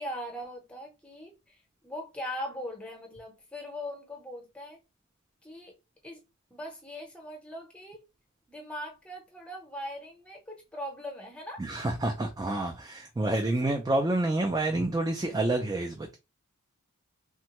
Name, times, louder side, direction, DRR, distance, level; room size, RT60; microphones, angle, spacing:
voice 1, 0.0-4.8 5.4-5.8 6.0-6.2 6.5-8.0 8.5-11.6 13.4-13.7, equal, 5° left, 0.7 m, -40 dB
voice 2, 11.6-16.2, right 2 dB, 15° right, 0.3 m, -28 dB
3.4 x 2.1 x 2.9 m
head